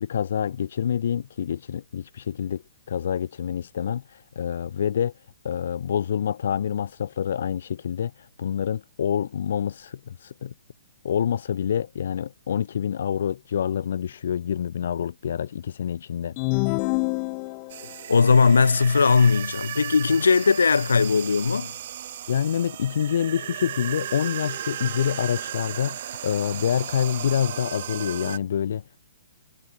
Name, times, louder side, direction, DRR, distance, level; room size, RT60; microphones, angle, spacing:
voice 1, 0.0-2.6 2.9-10.5 11.0-16.4 22.3-29.0, left 8 dB, 65° left, 2.9 m, -27 dB
sound 1, 16.4-17.9, left 40 dB or more, 35° left, 1.2 m, -26 dB
sound 2, 17.7-28.4, right 11 dB, 55° right, 4.5 m, -35 dB
voice 2, 18.1-21.7, left 5 dB, 85° left, 7.1 m, -19 dB
hypercardioid pair, 135°, 0 cm